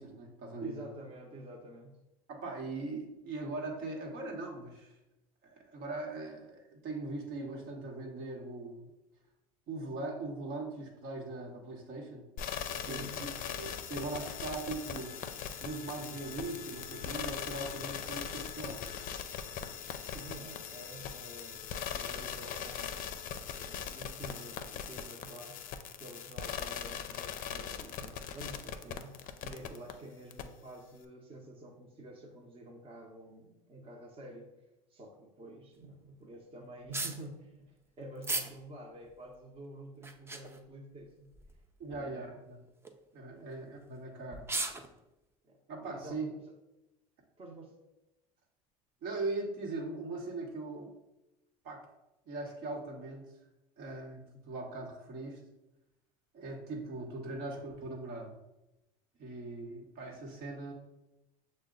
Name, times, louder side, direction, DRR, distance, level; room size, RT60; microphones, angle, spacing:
voice 1, 0.0-0.8 2.3-4.9 5.4-8.9 9.7-12.3 12.9-13.1 13.6-15.2 15.6-18.8 41.8-42.6 43.1-44.5 45.7-46.3 49.0-50.9 51.6-51.8 52.3-53.3 53.8-55.4 56.3-58.4 59.2-60.7, right 2 dB, 60° right, 0 dB, 1.1 m, -40 dB
voice 2, 0.6-2.0 12.8-13.4 19.8-23.1 23.5-25.6 26.0-29.1 29.4-34.5 34.9-41.3 41.9-42.4 43.3-43.6 45.4-46.2 47.4-47.8, right 1 dB, 30° right, -1 dB, 0.9 m, -49 dB
sound 1, 12.4-29.9 30.3-30.4, left 8 dB, 50° left, 0.5 m, -40 dB
sound 2, 36.9-37.2 38.2-38.5 39.1-39.2 40.0-40.6 41.3-41.6 41.9-42.0 42.7-42.9 43.9-44.0 44.3-44.9, right 2 dB, 15° right, 0.5 m, -36 dB
6.3 x 2.2 x 3.8 m, 0.96 s
hypercardioid pair, 80°, 18 cm